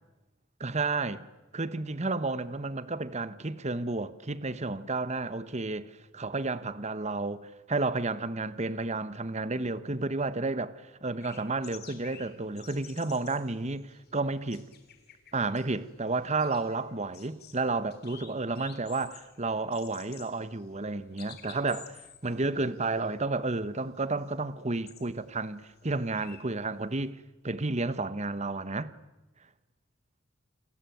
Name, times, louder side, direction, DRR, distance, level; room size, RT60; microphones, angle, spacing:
voice 1, 0.6-1.3 1.5-14.6 15.3-27.2 27.4-28.9, right 3 dB, 35° right, 1.1 m, -31 dB
sound 1, 11.2-27.1, left 8 dB, 50° left, 3.6 m, -53 dB
29.0 x 21.5 x 9.3 m
head